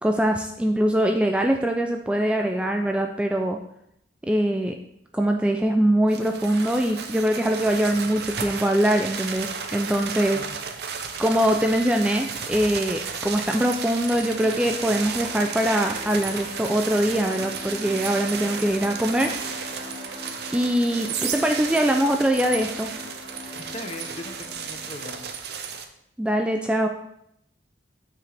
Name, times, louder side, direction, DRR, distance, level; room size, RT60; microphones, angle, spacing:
voice 1, 0.0-3.6 4.3-4.7 5.1-10.4 11.2-19.3 20.5-22.9 26.2-26.9, right 1 dB, 5° right, 3 dB, 0.3 m, -23 dB
sound 1, 6.1-25.9, right 6 dB, 60° right, 0.7 m, -33 dB
sound 2, 14.3-24.9, equal, 40° right, 1.3 m, -40 dB
voice 2, 23.7-25.3, left 2 dB, 35° left, 6 dB, 0.7 m, -39 dB
9.2 x 4.8 x 3.4 m, 0.76 s
head